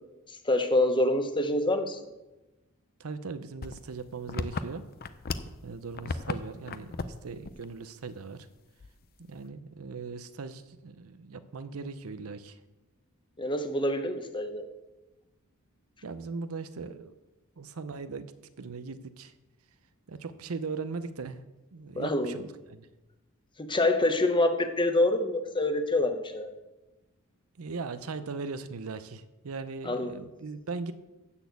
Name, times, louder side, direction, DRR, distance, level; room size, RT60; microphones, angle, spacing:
voice 1, 0.4-2.0 13.4-14.7 22.0-22.3 23.6-26.5 29.9-30.2, left 1 dB, 20° left, 7 dB, 0.9 m, -26 dB
voice 2, 3.0-4.9 5.4-8.5 9.2-12.6 16.0-17.1 17.6-18.3 18.6-19.3 20.1-21.4 21.7-22.9 27.6-30.9, right 4 dB, 75° right, 11 dB, 0.7 m, -39 dB
sound 1, 3.6-5.6 5.9-6.4 6.7-7.2 7.4-7.6 8.0-8.1 8.8-9.2, left 3 dB, 45° left, 0.5 m, -34 dB
12.5 x 4.3 x 8.2 m, 1.0 s
head